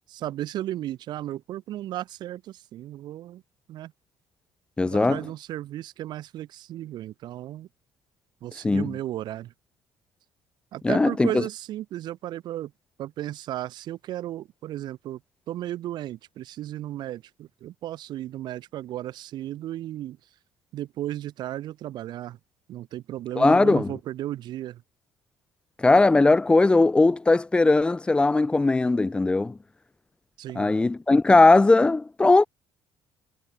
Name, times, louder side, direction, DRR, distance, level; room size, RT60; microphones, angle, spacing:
voice 1, 0.1-3.4 3.7-3.9 4.8-7.7 8.4-9.5 10.7-12.7 13.0-15.2 15.5-20.2 20.7-22.4 22.7-24.8 30.4-30.8, right 13 dB, 60° right, 1.4 m, -34 dB
voice 2, 4.8-5.2 8.6-8.9 10.8-11.4 23.4-23.9 25.8-29.6 30.6-32.5, left 3 dB, 10° left, 0.6 m, -19 dB
cardioid pair, 145°, 8 cm